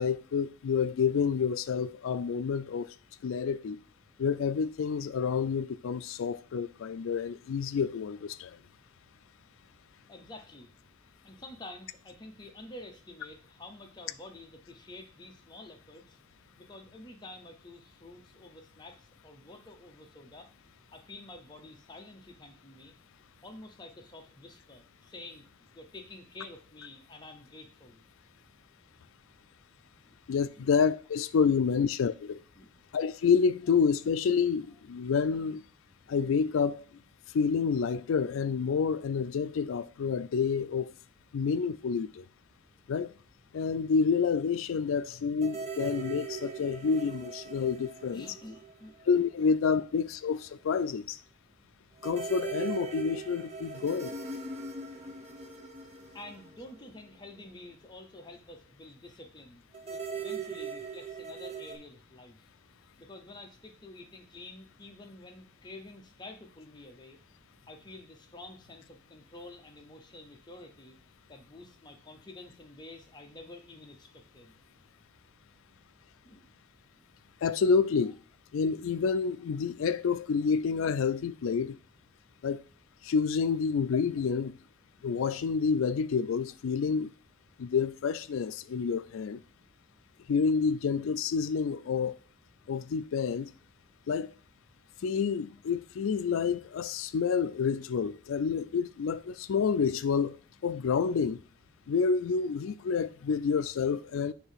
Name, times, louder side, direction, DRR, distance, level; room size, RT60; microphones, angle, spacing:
voice 1, 0.0-2.9 3.2-3.8 4.2-8.6 30.3-32.4 32.9-35.6 36.1-36.8 37.3-40.9 41.3-42.3 42.9-43.1 43.5-48.3 49.1-51.2 52.0-54.1 77.4-78.2 78.5-81.8 82.4-82.6 83.0-84.6 85.0-87.1 87.6-89.4 90.3-92.1 92.7-93.5 94.1-94.3 95.0-101.4 101.9-104.3, left 6 dB, 70° left, 0.3 m, -28 dB
voice 2, 10.1-10.7 11.2-16.2 16.6-20.5 20.9-23.0 23.4-25.5 25.7-28.0 30.0-30.2 30.5-30.7 32.6-32.8 48.0-49.0 49.4-49.5 56.1-62.5 63.0-67.2 67.7-71.0 71.3-74.6 76.2-76.5 76.9-77.0, left 2 dB, 20° left, 0.7 m, -49 dB
sound 1, 45.4-49.2 49.4-49.5 52.0-57.4 59.7-61.8, right 5 dB, 30° right, 0.6 m, -40 dB
6.8 x 2.7 x 5.6 m
head